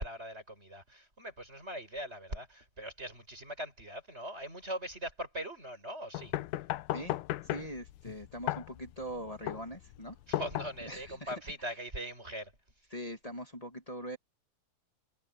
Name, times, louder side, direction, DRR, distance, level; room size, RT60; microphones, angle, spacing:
voice 1, 0.0-6.3 10.3-12.5, equal, 15° right, 7.3 m, -41 dB
sound 1, 6.1-11.1, left 15 dB, 75° left, 2.0 m, -36 dB
voice 2, 7.4-10.2 10.9-11.3 12.9-14.2, equal, 25° left, 0.7 m, -42 dB
omnidirectional pair, 4.2 m